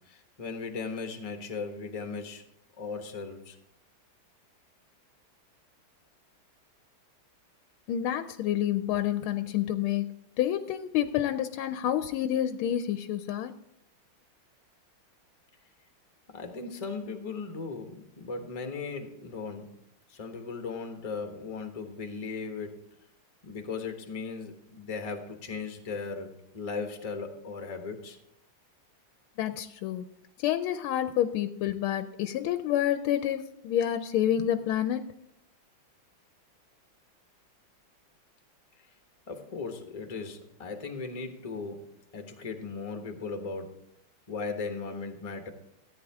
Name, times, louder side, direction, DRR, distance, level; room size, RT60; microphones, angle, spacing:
voice 1, 0.1-2.4 2.8-3.6 16.3-19.7 20.1-22.8 23.4-28.2 39.3-43.8 44.3-45.5, left 4 dB, 20° left, 5 dB, 0.9 m, -37 dB
voice 2, 7.9-10.1 10.4-13.5 29.4-30.1 30.4-35.1, left 11 dB, 90° left, 10 dB, 1.4 m, -28 dB
14.0 x 9.4 x 3.5 m, 0.79 s
omnidirectional pair, 2.3 m